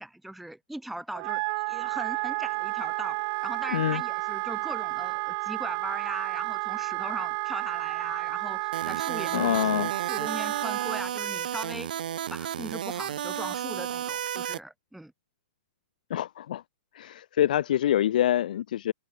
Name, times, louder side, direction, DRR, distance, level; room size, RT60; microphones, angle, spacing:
voice 1, 0.0-11.9 12.3-15.1, right 1 dB, ahead, 1.6 m, -39 dB
Wind instrument woodwind instrument, 1.1-11.0, right 40 dB or more, 30° right, 0.7 m, -31 dB
voice 2, 3.7-4.0 9.3-9.9 16.1-16.6 16.9-18.9, left 11 dB, 60° left, 0.3 m, -25 dB
sound 1, 8.7-14.6, right 10 dB, 65° right, 2.4 m, -33 dB
hypercardioid pair, 165°, 5 cm